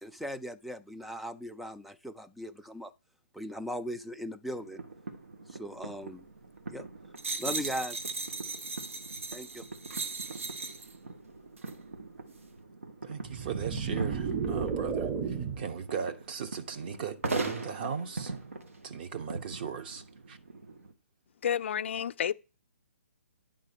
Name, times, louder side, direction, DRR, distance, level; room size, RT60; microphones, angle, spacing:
voice 1, 0.0-2.9 3.3-4.8 5.5-6.3 6.7-6.9 7.4-8.0 9.3-9.7, equal, ahead, 0.3 m, -38 dB
sound 1, 4.5-20.9, right 3 dB, 90° right, 1.5 m, -41 dB
sound 2, 7.2-10.9 11.6-11.7, right 4 dB, 70° right, 1.2 m, -37 dB
voice 2, 13.0-15.1 15.6-18.3 18.8-20.4, right 7 dB, 45° right, 1.0 m, -38 dB
sound 3, 13.2-15.8, right 6 dB, 20° right, 0.8 m, -33 dB
voice 3, 21.4-22.3, left 8 dB, 60° left, 0.5 m, -30 dB
9.8 x 3.7 x 6.8 m
hypercardioid pair, 145°, 7 cm